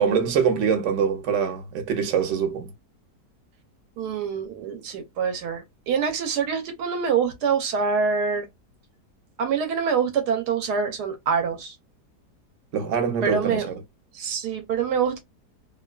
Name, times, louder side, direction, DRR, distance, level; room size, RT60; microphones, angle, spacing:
voice 1, 0.0-2.7 12.7-13.7, right 7 dB, 60° right, 0.9 m, -24 dB
voice 2, 4.0-8.5 9.4-11.8 13.2-13.7 14.1-15.2, right 6 dB, 80° right, 1.1 m, -25 dB
2.7 x 2.2 x 2.2 m
omnidirectional pair, 1.7 m